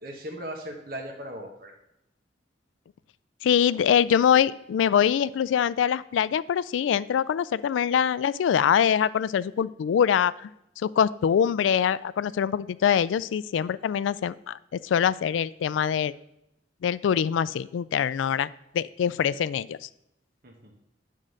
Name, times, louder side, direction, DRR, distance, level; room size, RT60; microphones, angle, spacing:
voice 1, 0.0-1.7 20.4-20.7, equal, 55° right, 1 dB, 1.1 m, -38 dB
voice 2, 3.4-10.5 10.8-16.2 16.8-18.5 18.7-19.9, left 8 dB, 90° left, 18 dB, 0.3 m, -24 dB
9.5 x 3.8 x 6.4 m, 0.82 s
head